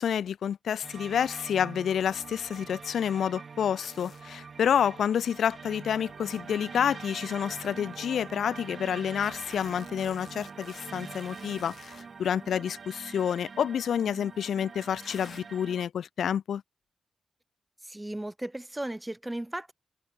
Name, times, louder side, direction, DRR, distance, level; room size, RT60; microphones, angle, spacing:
voice 1, 0.0-11.8 12.2-16.6, left 8 dB, 90° left, 0.4 m, -29 dB
sound 1, 0.8-15.9, right 5 dB, 40° right, 3.8 m, -44 dB
sound 2, 2.5-2.6 3.8-4.2 5.4-6.4 7.1-7.2 7.6-7.7 9.2-12.1 13.0-13.3 14.4-14.5 15.0-15.4, left 7 dB, 55° left, 1.9 m, -51 dB
voice 2, 17.8-19.7, right 1 dB, 10° right, 1.5 m, -36 dB
wide cardioid pair, 180°, 0 cm